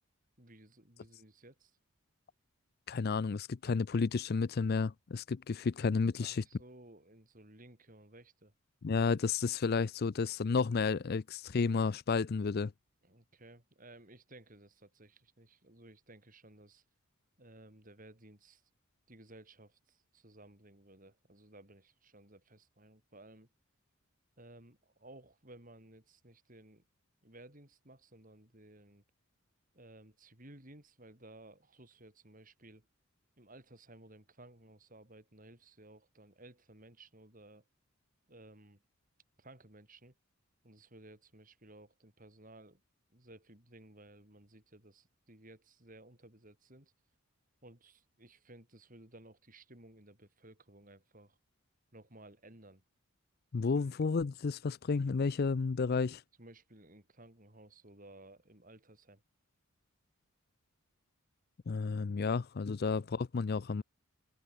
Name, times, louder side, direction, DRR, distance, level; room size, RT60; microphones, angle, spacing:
voice 1, 0.4-1.8 6.2-8.5 13.0-16.8 17.4-18.6 19.1-23.5 24.4-26.8 27.2-29.0 29.7-32.9 33.4-37.6 38.3-38.8 39.4-40.1 40.6-42.8 43.1-46.9 47.6-51.4 51.9-52.8 53.8-53.9 56.4-59.2 62.8-62.9, right 1 dB, 40° right, 5.1 m, -57 dB
voice 2, 2.9-6.4 8.8-12.7 53.5-56.2 61.7-63.8, left 4 dB, 45° left, 0.4 m, -31 dB
head